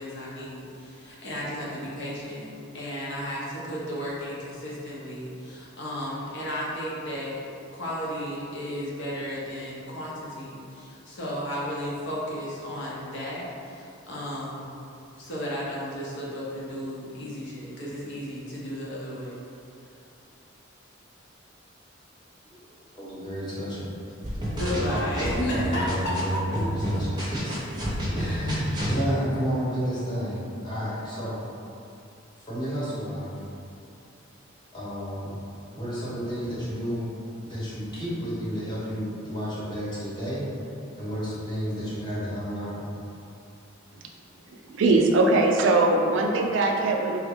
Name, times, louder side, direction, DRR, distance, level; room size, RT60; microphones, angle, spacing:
voice 1, 0.0-2.5 2.7-7.4 7.7-14.7 15.2-19.4 24.5-26.4, equal, 65° left, -6 dB, 0.7 m, -33 dB
voice 2, 22.4-23.9 24.6-24.9 25.5-27.6 28.1-31.4 32.5-33.4 34.7-35.4 35.7-37.1 37.4-40.5 40.9-42.8, equal, 20° left, -9 dB, 0.9 m, -31 dB
sound 1, 24.2-26.2 26.5-29.0, equal, 20° right, 0.6 m, -29 dB
voice 3, 44.7-47.2, right 2 dB, 65° right, 2 dB, 0.3 m, -21 dB
3.4 x 2.1 x 3.5 m, 2.6 s
head